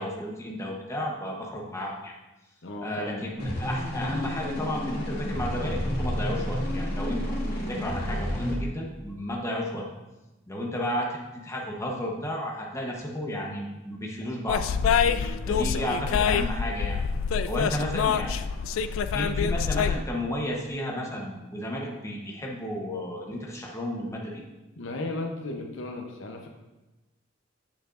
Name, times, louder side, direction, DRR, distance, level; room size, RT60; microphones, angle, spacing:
voice 1, 0.0-2.1 2.8-9.8 10.5-14.6 15.5-17.0 17.5-18.4 19.1-24.4, equal, 15° left, -2 dB, 0.9 m, -32 dB
voice 2, 2.6-3.5 15.0-16.3 24.8-26.5, left 2 dB, 70° left, 3 dB, 0.8 m, -36 dB
sound 1, 3.4-8.5, left 1 dB, 50° left, 2.4 m, -30 dB
sound 2, 14.5-20.0, left 6 dB, 90° left, 0.3 m, -26 dB
8.0 x 6.9 x 2.5 m, 1.1 s
head